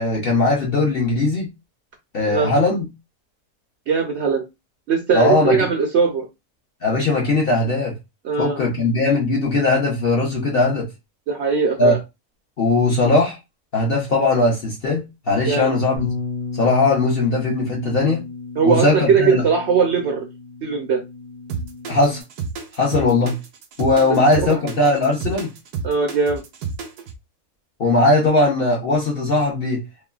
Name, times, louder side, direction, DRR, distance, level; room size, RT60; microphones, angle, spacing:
voice 1, 0.0-1.5 2.1-2.9 5.1-5.6 6.8-8.0 8.4-10.9 11.8-11.9 12.6-13.4 13.7-16.1 16.5-18.2 18.6-19.4 21.9-22.2 22.7-23.4 23.8-25.5 27.8-29.8, left 2 dB, 50° left, 0.8 m, -19 dB
voice 2, 3.9-4.4 4.9-6.3 8.2-8.6 11.3-12.0 15.5-15.7 18.6-20.3 20.6-21.0 24.3-24.6 25.8-26.4, right 5 dB, 65° right, 0.7 m, -20 dB
Bass guitar, 16.0-22.2, left 4 dB, 85° left, 1.3 m, -34 dB
sound 1, 21.5-27.1, right 5 dB, 80° right, 1.1 m, -30 dB
3.1 x 2.1 x 2.3 m
omnidirectional pair, 1.6 m